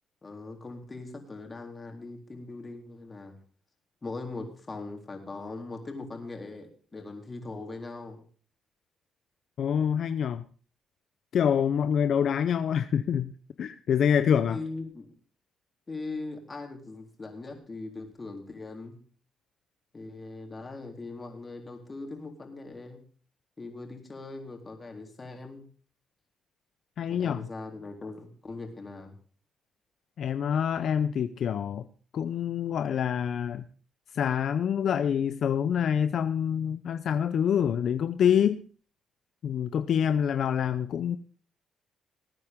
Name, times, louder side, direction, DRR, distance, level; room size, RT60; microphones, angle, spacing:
voice 1, 0.2-3.3 4.0-8.2 14.5-15.1 15.9-19.0 19.9-23.0 23.6-25.7 27.1-29.1, left 3 dB, 30° left, 3 dB, 3.8 m, -40 dB
voice 2, 9.6-10.4 11.3-13.3 13.6-14.6 27.0-27.5 30.2-31.8 32.1-33.6 34.1-38.6 39.4-41.2, left 8 dB, 65° left, 11 dB, 0.6 m, -26 dB
19.5 x 9.3 x 3.7 m, 0.41 s
cardioid pair, 90°, 0 cm